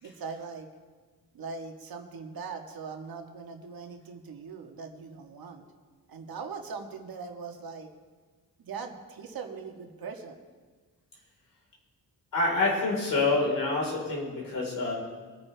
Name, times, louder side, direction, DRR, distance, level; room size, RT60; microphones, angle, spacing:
voice 1, 0.0-0.7 1.3-5.6 6.1-7.9 8.6-10.4, right 5 dB, 70° right, 3 dB, 1.7 m, -40 dB
voice 2, 12.3-14.9, left 3 dB, 60° left, -2 dB, 4.4 m, -27 dB
23.5 x 9.7 x 3.4 m, 1.4 s
wide cardioid pair, 130°, 37 cm